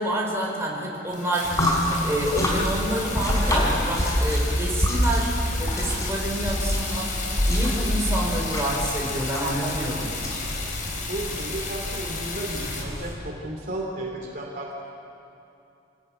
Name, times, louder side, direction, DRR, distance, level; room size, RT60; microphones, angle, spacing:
voice 1, 0.0-1.5 2.0-7.1 7.4-10.1, right 1 dB, 15° right, -2 dB, 4.9 m, -28 dB
sound 1, 1.1-12.8, left 4 dB, 45° left, 4.0 m, -34 dB
sound 2, 1.4-13.1, equal, 15° left, 5.4 m, -27 dB
voice 2, 11.1-14.8, right 1 dB, 45° right, 0 dB, 2.8 m, -33 dB
28.5 x 19.5 x 9.1 m, 2.7 s
head